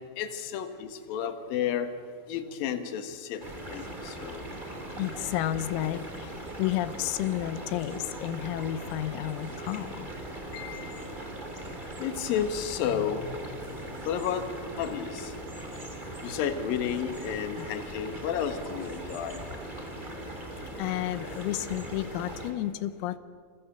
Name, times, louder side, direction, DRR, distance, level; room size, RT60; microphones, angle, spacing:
voice 1, 0.2-1.9 2.3-4.5 10.5-11.2 12.0-13.7 14.0-14.5 14.8-15.3 16.2-19.4, left 8 dB, 60° left, 8 dB, 2.6 m, -32 dB
sound 1, 3.4-22.5, right 1 dB, 15° right, 1.7 m, -40 dB
voice 2, 5.0-10.1 17.6-17.7 20.8-23.2, left 13 dB, 85° left, 13 dB, 3.6 m, -32 dB
28.0 x 27.5 x 6.8 m, 2.1 s
omnidirectional pair, 5.9 m